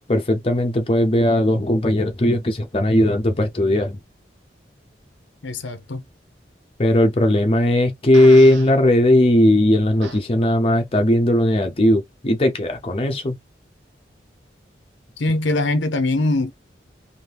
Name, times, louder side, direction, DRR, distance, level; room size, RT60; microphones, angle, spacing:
voice 1, 0.1-4.0 6.8-13.3, left 1 dB, 30° left, 0.6 m, -17 dB
voice 2, 5.4-6.0 15.2-16.5, left 2 dB, 85° left, 0.7 m, -22 dB
Fart, 8.1-8.7 10.0-10.2, right 4 dB, 85° right, 1.0 m, -35 dB
2.8 x 2.7 x 3.4 m
head